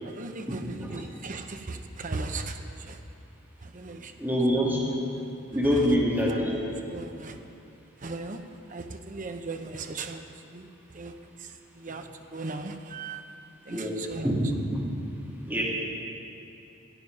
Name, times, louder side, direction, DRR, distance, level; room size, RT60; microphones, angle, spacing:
voice 1, 0.0-3.0 3.6-4.1 5.7-6.0 6.3-6.4 6.9-7.4 8.0-8.4 8.7-13.3 13.6-14.3, right 3 dB, 40° right, 6 dB, 0.7 m, -38 dB
voice 2, 4.2-4.8 5.5-6.6 13.7-14.0 14.2-14.3 14.7-14.8 15.4-15.6, equal, 10° right, -6 dB, 2.5 m, -25 dB
14.0 x 9.1 x 5.4 m, 2.8 s
head